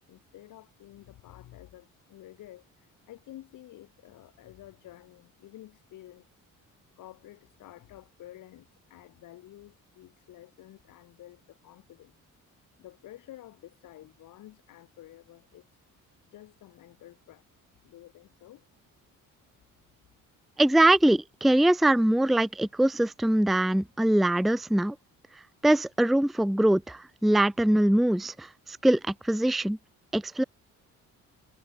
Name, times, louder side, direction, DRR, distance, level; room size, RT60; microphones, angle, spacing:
voice 1, 0.1-6.3 6.6-12.1 12.8-15.7 16.0-16.1 16.3-17.4 17.8-18.6, left 14 dB, 75° left, 6.7 m, -50 dB
voice 2, 20.6-24.9 25.6-28.5 28.8-29.8 30.1-30.4, right 1 dB, ahead, 0.5 m, -23 dB
cardioid pair, 170°, 31 cm